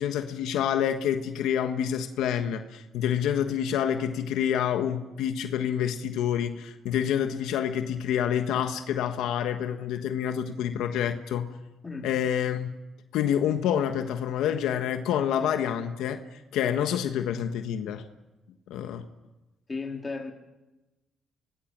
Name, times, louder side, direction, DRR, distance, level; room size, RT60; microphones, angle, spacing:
voice 1, 0.0-11.5 12.0-12.7 13.1-18.0 18.7-19.0, left 9 dB, 90° left, 7 dB, 1.4 m, -28 dB
voice 2, 19.7-20.3, left 4 dB, 25° left, 2 dB, 3.6 m, -34 dB
25.0 x 18.5 x 7.5 m, 1.0 s
cardioid pair, 90°, 0 cm